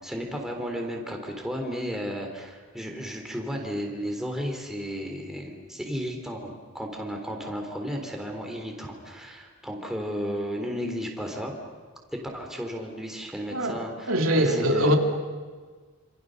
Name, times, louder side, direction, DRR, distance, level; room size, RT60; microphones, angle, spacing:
voice 1, 0.0-11.5 12.1-15.0, equal, ahead, 1 dB, 3.8 m, -33 dB
voice 2, 14.1-15.0, equal, 75° right, 3 dB, 2.8 m, -22 dB
28.0 x 27.5 x 6.7 m, 1.5 s
head